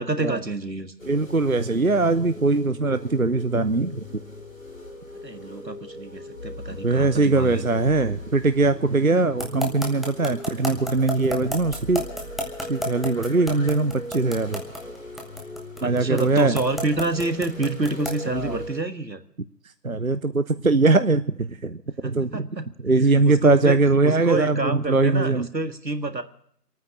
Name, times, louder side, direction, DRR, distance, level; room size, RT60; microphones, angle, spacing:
voice 1, 0.0-1.1 5.2-7.6 15.8-19.2 22.0-22.7 23.2-26.2, right 2 dB, 85° right, 10 dB, 1.9 m, -28 dB
sound 1, 1.0-18.8, left 1 dB, 55° left, 2.7 m, -39 dB
voice 2, 1.1-4.1 6.8-12.1 12.7-14.6 15.8-16.6 18.3-18.6 19.8-22.5 22.8-25.5, right 3 dB, 55° right, 12 dB, 0.7 m, -21 dB
sound 2, 9.4-18.3, equal, ahead, 0.9 m, -30 dB
24.0 x 9.4 x 6.4 m, 0.66 s
figure-of-eight pair, 175°, 49 cm